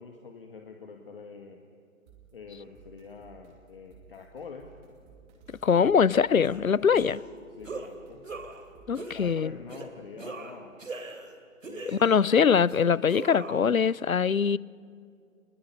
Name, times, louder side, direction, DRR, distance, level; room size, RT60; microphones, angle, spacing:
voice 1, 0.0-1.6 2.3-4.7 7.5-8.2 9.0-10.8 11.6-12.0, left 5 dB, 40° left, 2.1 m, -45 dB
sound 1, 2.1-9.5, right 5 dB, 15° right, 2.4 m, -57 dB
voice 2, 5.6-7.2 8.9-9.5 11.9-14.6, left 6 dB, 75° left, 0.7 m, -23 dB
sound 2, 6.4-6.6 6.9-7.3 7.6-7.9 8.2-8.6 9.0-9.2 9.7-9.9 10.2-11.3 11.6-12.3 12.7-13.6, right 3 dB, 65° right, 3.3 m, -39 dB
27.5 x 21.0 x 9.9 m
figure-of-eight pair, 145°, 41 cm